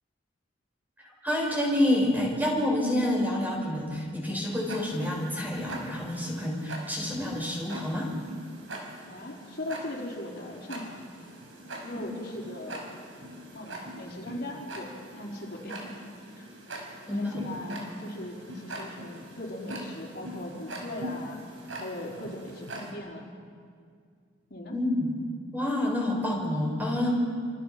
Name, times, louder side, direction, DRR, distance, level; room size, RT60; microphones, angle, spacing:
voice 1, 1.0-8.1 17.1-17.4 24.7-25.1 25.5-27.1, left 1 dB, 10° right, -2 dB, 6.1 m, -28 dB
Tick-tock, 4.6-22.9, right 1 dB, 80° right, 5.5 m, -42 dB
voice 2, 9.1-11.1 11.8-13.0 13.5-16.1 16.4-16.5 16.8-23.3 24.5-24.7, left 1 dB, 55° left, -2 dB, 4.3 m, -39 dB
28.5 x 27.0 x 5.9 m, 2.1 s
head